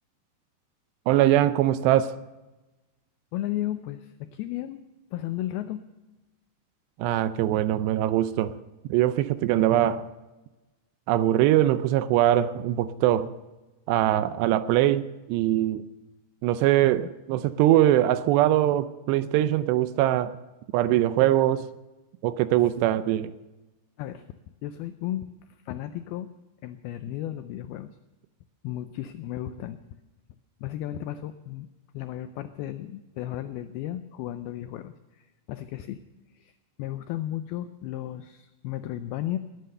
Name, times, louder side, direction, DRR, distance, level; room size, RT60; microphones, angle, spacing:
voice 1, 1.1-2.2 7.0-8.6 8.9-10.1 11.1-13.3 13.9-15.8 16.4-20.4 20.7-21.7 22.2-23.3, right 13 dB, 80° right, 2.6 m, -22 dB
voice 2, 3.3-4.8 5.1-5.9 24.0-25.3 25.7-26.3 26.6-28.0 28.6-30.0 30.6-31.7 31.9-36.0 36.3-36.5 36.8-39.4, left 13 dB, 90° left, 2.2 m, -34 dB
20.5 x 9.5 x 6.7 m
omnidirectional pair, 5.2 m